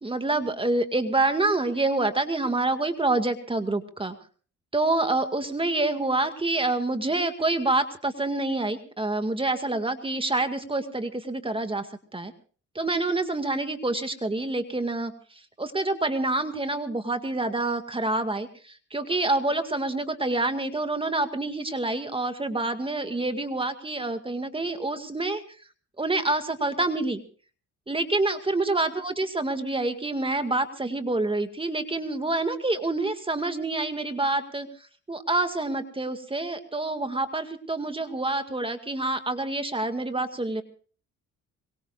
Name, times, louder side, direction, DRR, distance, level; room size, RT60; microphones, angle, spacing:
voice 1, 0.0-4.2 4.7-11.9 12.1-12.3 12.8-25.4 26.0-27.2 27.9-34.7 35.1-40.6, right 2 dB, 15° right, 8 dB, 2.1 m, -27 dB
24.0 x 22.5 x 2.5 m, 0.41 s
cardioid pair, 90°, 30 cm